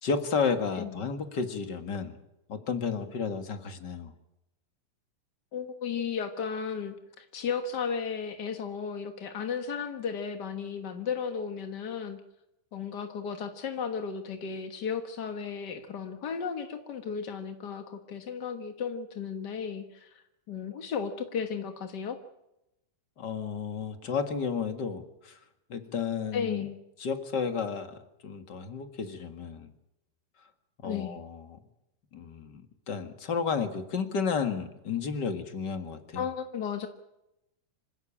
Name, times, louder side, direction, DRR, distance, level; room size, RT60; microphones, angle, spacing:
voice 1, 0.0-2.2 2.5-4.1 23.2-25.4 25.7-26.7 27.0-29.7 30.8-31.6 32.1-36.3, left 5 dB, 40° left, 8 dB, 1.8 m, -32 dB
voice 2, 0.8-1.1 5.5-12.2 12.7-20.1 20.5-22.2 26.3-26.8 30.8-31.2 36.1-36.9, left 6 dB, 55° left, 7 dB, 1.2 m, -34 dB
26.5 x 16.0 x 8.6 m, 0.88 s
omnidirectional pair, 3.9 m